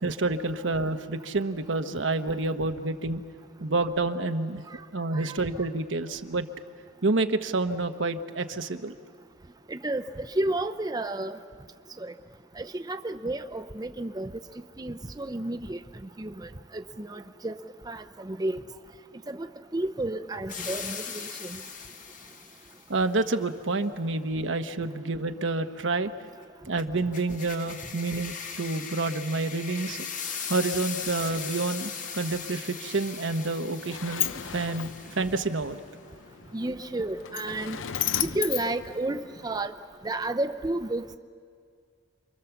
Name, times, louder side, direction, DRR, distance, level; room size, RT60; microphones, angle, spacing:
voice 1, 0.0-3.2 3.6-4.6 4.9-6.5 7.0-9.0 22.9-26.1 26.7-30.0 30.5-35.8, right 3 dB, 75° right, 8 dB, 1.1 m, -28 dB
voice 2, 9.7-10.0 10.4-11.4 12.0-12.1 12.6-14.3 14.8-15.8 16.2-17.6 17.9-18.6 19.3-19.5 19.7-21.6 36.5-37.8 38.2-39.7 40.0-41.2, right 2 dB, 20° right, 7 dB, 0.6 m, -31 dB
sound 1, 20.5-22.8 26.8-35.7, left 6 dB, 45° left, 1.5 m, -39 dB
Sliding door, 33.3-39.7, left 11 dB, 85° left, 0.6 m, -35 dB
28.5 x 24.0 x 7.1 m, 2.2 s
head